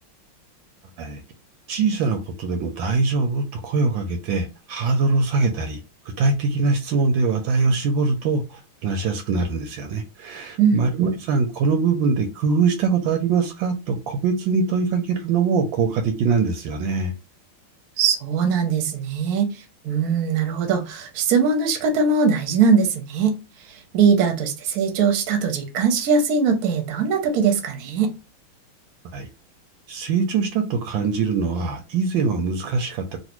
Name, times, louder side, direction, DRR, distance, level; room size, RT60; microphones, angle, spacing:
voice 1, 1.7-5.8 6.2-17.1 29.1-29.3 29.9-33.2, right 4 dB, 75° right, 1.3 m, -23 dB
voice 2, 18.0-23.4 23.6-28.1, right 5 dB, 60° right, 1.0 m, -21 dB
3.2 x 2.5 x 3.0 m
omnidirectional pair, 2.3 m